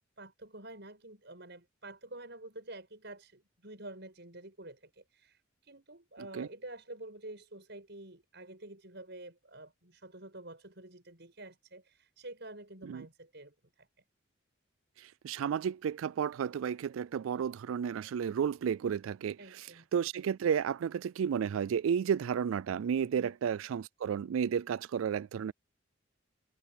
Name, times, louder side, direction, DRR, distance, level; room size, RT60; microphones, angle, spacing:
voice 1, 0.2-13.9 19.4-19.9 23.1-23.4, right 2 dB, 55° right, 7.9 m, -49 dB
voice 2, 15.0-19.4 19.9-25.5, right 7 dB, 90° right, 0.3 m, -32 dB
head